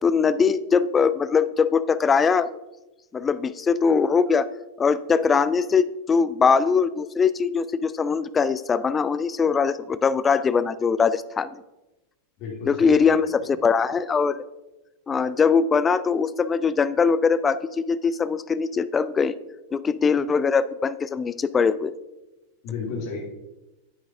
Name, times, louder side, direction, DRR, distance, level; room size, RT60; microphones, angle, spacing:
voice 1, 0.0-2.5 3.1-4.5 4.8-11.6 12.7-14.4 15.1-19.3 19.7-21.9, left 5 dB, 20° left, 15 dB, 0.3 m, -21 dB
voice 2, 12.4-13.3 22.6-23.2, left 5 dB, 45° left, -2 dB, 2.8 m, -33 dB
9.5 x 8.5 x 2.7 m, 1.0 s
figure-of-eight pair, 90°, 0 cm